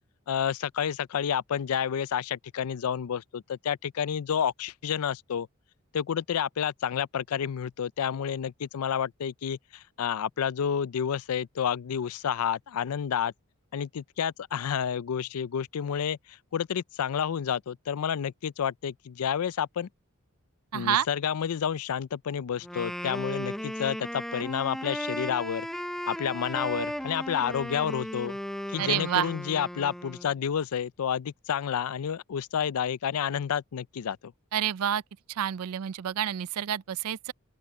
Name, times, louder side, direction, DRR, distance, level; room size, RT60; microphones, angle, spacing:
voice 1, 0.3-5.5 5.9-13.3 13.7-19.9 20.7-25.7 26.1-28.4 28.7-34.3, left 8 dB, 85° left, 0.4 m, -30 dB
voice 2, 20.7-21.1 28.8-29.3 34.5-35.0 35.4-37.3, right 10 dB, 90° right, 0.4 m, -28 dB
Wind instrument woodwind instrument, 22.6-30.3, equal, ahead, 0.7 m, -36 dB
sound 1, 26.5-30.6, left 3 dB, 45° left, 4.3 m, -63 dB
open air
head